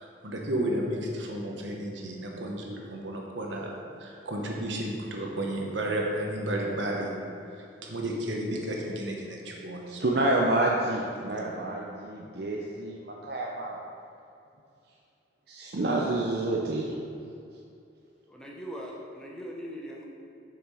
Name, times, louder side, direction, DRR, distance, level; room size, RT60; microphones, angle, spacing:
voice 1, 0.2-7.1 7.8-10.0 11.3-11.4, right 1 dB, 75° right, 0 dB, 1.3 m, -32 dB
voice 2, 9.9-13.8 15.5-16.9, right 2 dB, 55° right, -2 dB, 0.6 m, -28 dB
voice 3, 18.3-20.0, equal, 5° left, -3 dB, 0.8 m, -40 dB
7.1 x 6.1 x 4.9 m, 2.6 s
head